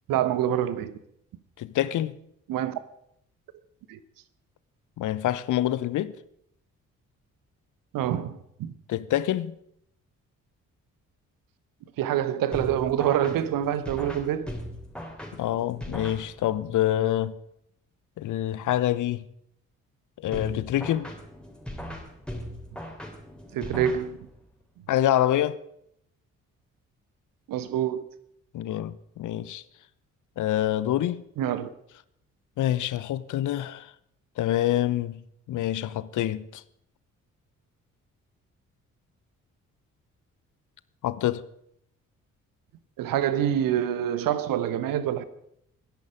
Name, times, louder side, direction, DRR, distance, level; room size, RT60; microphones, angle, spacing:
voice 1, 0.1-1.0 2.5-2.8 3.9-4.0 7.9-8.7 12.0-14.6 23.5-24.2 27.5-28.0 31.4-31.7 43.0-45.2, right 10 dB, 55° right, 1.2 m, -26 dB
voice 2, 1.6-2.1 5.0-6.1 8.9-9.5 15.3-17.4 18.2-19.3 20.2-21.1 24.9-25.6 28.5-29.6 30.4-31.2 32.6-33.9 34.4-35.2 35.5-36.6 41.0-41.4, left 12 dB, 50° left, 0.8 m, -26 dB
sound 1, 12.5-16.7 20.3-24.5, equal, ahead, 3.5 m, -39 dB
22.0 x 10.5 x 5.1 m
figure-of-eight pair, 40°, 40 cm